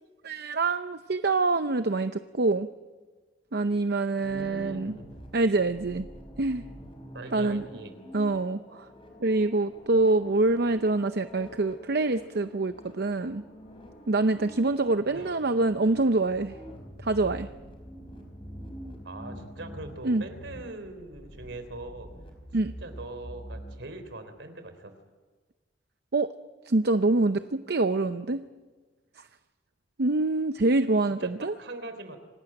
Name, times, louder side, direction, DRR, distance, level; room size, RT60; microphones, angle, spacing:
voice 1, 0.2-2.7 3.5-4.9 5.3-6.1 6.4-6.6 7.3-7.6 8.1-8.9 9.2-13.4 14.1-16.5 17.0-17.5 20.0-20.2 22.5-22.7 26.1-26.3 26.7-28.4 30.0-31.5, right 2 dB, 60° right, 10 dB, 0.7 m, -25 dB
sound 1, 4.2-23.7, equal, 30° left, 5.3 m, -45 dB
voice 2, 4.2-5.1 7.1-7.9 15.1-15.3 19.0-22.1 22.6-24.9 31.2-32.2, right 2 dB, 80° right, 9 dB, 3.6 m, -42 dB
27.0 x 18.5 x 9.0 m, 1.4 s
head